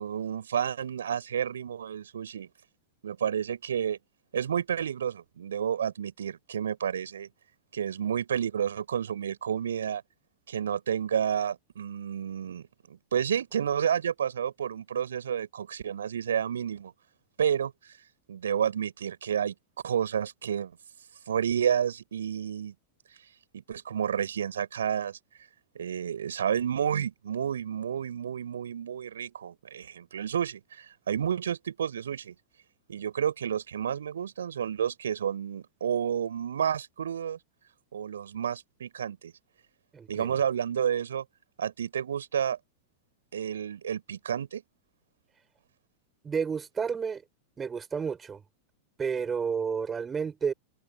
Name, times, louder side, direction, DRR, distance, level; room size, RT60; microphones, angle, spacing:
voice 1, 0.0-2.5 3.0-4.0 4.3-7.3 7.7-10.0 10.5-16.9 17.4-17.7 18.3-19.5 19.8-20.7 21.3-22.7 23.5-25.2 25.8-32.3 32.9-37.4 37.9-39.3 40.1-41.2 41.6-42.6 43.3-44.6, right 8 dB, 65° right, 7.2 m, -30 dB
voice 2, 39.9-40.4 46.2-47.2 47.6-48.4 49.0-50.5, right 6 dB, 20° right, 6.3 m, -31 dB
open air
figure-of-eight pair, 90°, 0 cm